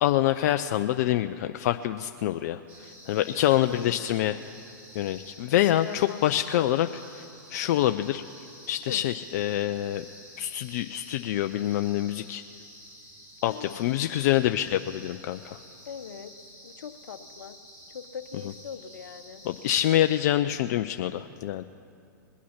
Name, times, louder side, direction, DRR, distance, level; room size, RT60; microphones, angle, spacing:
voice 1, 0.0-4.4 4.9-6.9 7.1-7.2 7.5-8.2 8.7-10.0 10.4-12.4 13.4-15.6 19.4-21.6, left 13 dB, 55° left, 9 dB, 0.4 m, -26 dB
sound 1, 2.7-20.3, equal, 20° right, 3.7 m, -50 dB
voice 2, 3.5-3.9 5.5-6.3 6.6-6.7 8.9-9.0 13.5-13.9 15.9-16.3 16.6-17.6 17.9-19.4, left 7 dB, 75° left, 10 dB, 0.9 m, -40 dB
21.0 x 8.4 x 5.8 m, 2.4 s
hypercardioid pair, 115°, 10 cm